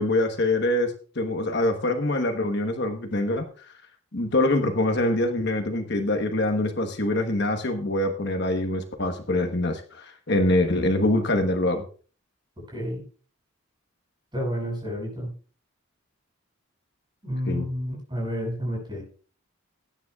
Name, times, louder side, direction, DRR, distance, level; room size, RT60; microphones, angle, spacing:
voice 1, 0.0-3.4 4.1-11.8 17.5-17.6, left 1 dB, 50° left, 5 dB, 1.2 m, -24 dB
voice 2, 12.7-13.0 14.3-15.3 17.2-19.0, equal, 20° right, -1 dB, 7.1 m, -30 dB
20.0 x 9.8 x 2.4 m, 0.39 s
head